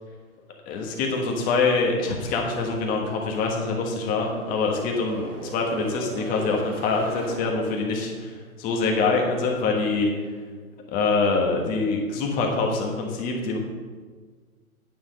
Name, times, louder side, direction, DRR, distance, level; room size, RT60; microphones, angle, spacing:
voice 1, 0.7-10.1 10.9-13.6, left 3 dB, 20° left, 1 dB, 1.3 m, -25 dB
sound 1, 2.8-7.5, right 2 dB, 55° right, 1.9 m, -38 dB
9.4 x 5.6 x 5.3 m, 1.5 s
hypercardioid pair, 140°, 44 cm